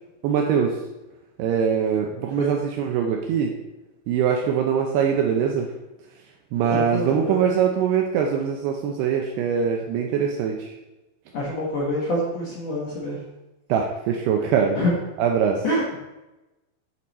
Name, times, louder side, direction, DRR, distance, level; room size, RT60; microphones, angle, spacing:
voice 1, 0.2-0.8 1.4-3.5 4.1-5.7 6.5-10.7 13.7-14.8 15.2-15.6, right 7 dB, 80° right, 2 dB, 2.4 m, -22 dB
voice 2, 6.7-7.4 11.3-13.2 14.7-14.9 15.6-15.8, left 1 dB, 75° left, -4 dB, 1.5 m, -26 dB
9.3 x 6.4 x 4.2 m, 1.0 s
omnidirectional pair, 5.3 m